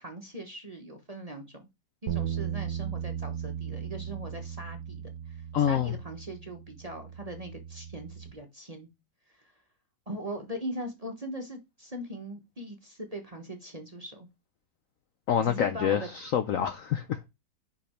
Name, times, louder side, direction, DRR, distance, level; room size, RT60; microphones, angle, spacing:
voice 1, 0.0-1.7 2.0-8.9 9.3-9.5 10.1-14.3 15.4-16.1, equal, 25° right, 0.9 m, -40 dB
sound 1, 2.1-8.3, right 9 dB, 60° right, 1.2 m, -37 dB
voice 2, 5.5-5.9 15.3-17.2, left 9 dB, 65° left, 0.8 m, -27 dB
5.5 x 5.1 x 4.3 m
omnidirectional pair, 2.0 m